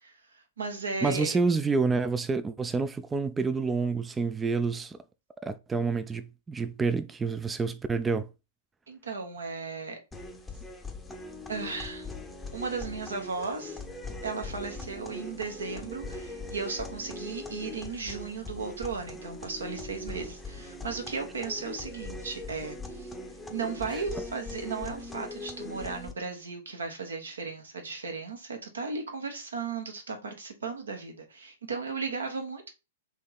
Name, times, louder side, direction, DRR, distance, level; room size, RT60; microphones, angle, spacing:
voice 1, 0.0-1.4 8.9-10.0 11.5-12.1 12.5-13.8 14.2-23.1 23.5-32.7, right 4 dB, 70° right, 1.2 m, -36 dB
voice 2, 1.0-5.0 5.4-8.3, right 4 dB, 15° right, 0.3 m, -28 dB
sound 1, 10.1-26.1, left 2 dB, 10° left, 0.7 m, -40 dB
3.6 x 3.0 x 4.0 m
figure-of-eight pair, 105°, 0 cm